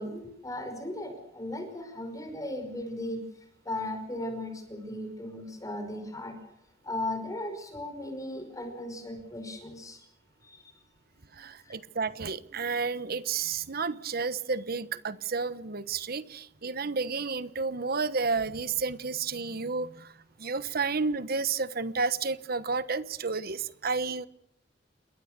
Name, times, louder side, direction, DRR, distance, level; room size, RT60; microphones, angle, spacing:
voice 1, 0.0-3.2 3.7-6.3 6.9-10.0, left 1 dB, 20° left, 6 dB, 5.4 m, -36 dB
voice 2, 11.4-20.1 20.4-24.3, right 4 dB, 55° right, 15 dB, 1.1 m, -31 dB
28.5 x 21.0 x 6.8 m, 0.74 s
head